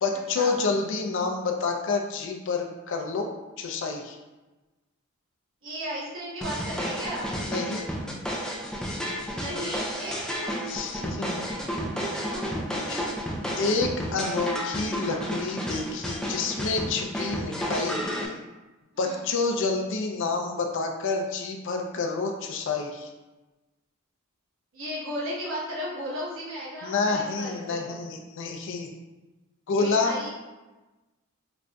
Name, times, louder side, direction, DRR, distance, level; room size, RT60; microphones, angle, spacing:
voice 1, 0.0-3.3 3.6-4.2 7.4-7.8 10.7-11.4 12.9-13.1 13.6-18.0 19.0-23.1 26.8-28.9 29.7-30.1, left 4 dB, 60° left, 3 dB, 0.5 m, -28 dB
voice 2, 5.6-7.3 9.3-10.5 10.9-11.0 11.7-12.9 19.0-19.2 24.7-28.0 29.8-30.3, equal, 65° right, -6 dB, 1.1 m, -35 dB
sound 1, 6.4-18.3, equal, 5° left, 0.4 m, -32 dB
5.0 x 2.5 x 2.2 m, 1.1 s
head